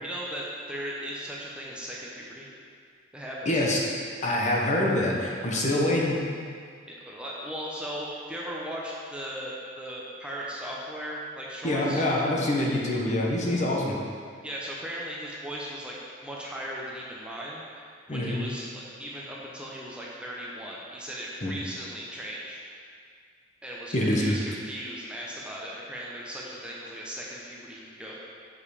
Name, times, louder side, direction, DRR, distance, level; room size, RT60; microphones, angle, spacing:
voice 1, 0.0-2.5 3.1-3.6 6.9-12.1 14.4-16.0 16.2-17.6 18.1-22.6 23.6-28.2, equal, 5° right, -5 dB, 0.8 m, -37 dB
voice 2, 3.5-3.8 4.2-6.2 11.6-13.9 18.1-18.4 21.4-21.5 23.9-24.3, left 1 dB, 40° left, -2 dB, 1.0 m, -25 dB
6.8 x 5.4 x 4.9 m, 2.1 s
head